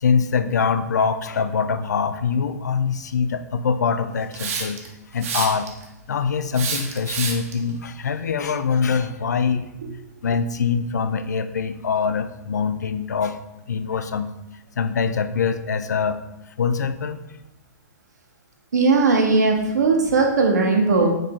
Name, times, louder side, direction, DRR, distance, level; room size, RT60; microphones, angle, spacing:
voice 1, 0.0-4.8 5.1-5.7 6.1-9.7 10.2-13.4 13.7-14.3 14.8-16.2 16.6-17.2, left 6 dB, 80° left, 11 dB, 0.3 m, -23 dB
Hiss, 4.3-4.9 5.2-5.8 6.5-7.5, right 5 dB, 50° right, 0.8 m, -28 dB
voice 2, 18.7-21.2, right 3 dB, 75° right, 1 dB, 1.0 m, -18 dB
4.9 x 2.8 x 3.6 m, 0.94 s
hypercardioid pair, 120°, 9 cm